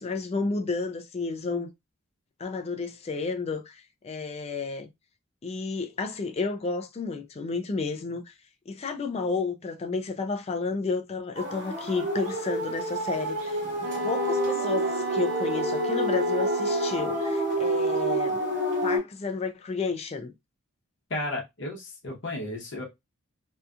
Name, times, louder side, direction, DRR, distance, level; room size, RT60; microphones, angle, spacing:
voice 1, 0.0-1.7 2.4-4.9 5.4-8.3 8.7-13.6 14.0-18.4 18.8-20.3, left 4 dB, 30° left, 0.3 m, -31 dB
sound 1, 11.4-19.0, right 1 dB, 55° right, 1.3 m, -28 dB
Wind instrument woodwind instrument, 13.8-17.3, right 3 dB, 75° right, 0.8 m, -34 dB
voice 2, 21.1-22.8, left 1 dB, 55° left, 0.8 m, -33 dB
2.7 x 2.3 x 2.4 m
head